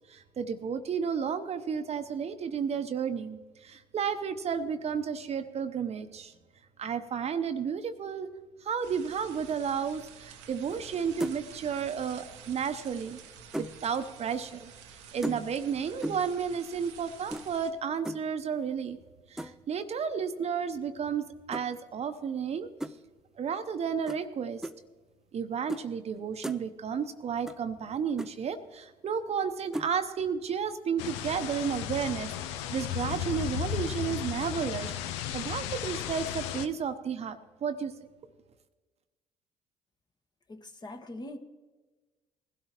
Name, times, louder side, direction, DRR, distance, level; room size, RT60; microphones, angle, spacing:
voice 1, 0.1-6.3 6.8-8.3 8.6-13.2 13.6-14.7 15.1-19.0 19.3-22.7 23.4-24.6 25.3-37.9, right 7 dB, 50° right, 9 dB, 0.8 m, -32 dB
sound 1, 8.8-17.7, right 7 dB, 90° right, 0.9 m, -50 dB
sound 2, 10.7-10.9 11.2-11.6 12.8-13.8 15.2-15.7 16.0-16.4 17.3-17.5 18.1-18.3 19.4-19.7 21.5-21.7 22.8-23.0 24.1-24.2 24.6-24.8 25.7-25.8 26.2-26.6 27.5-27.6 27.9-28.0 28.2-28.3 29.7-29.9, right 1 dB, 5° right, 0.5 m, -36 dB
sound 3, 31.0-36.7, left 10 dB, 85° left, 0.5 m, -35 dB
voice 2, 40.5-41.4, left 1 dB, 30° left, 6 dB, 1.4 m, -42 dB
19.5 x 12.5 x 3.0 m, 1.3 s
hypercardioid pair, 60°, 14 cm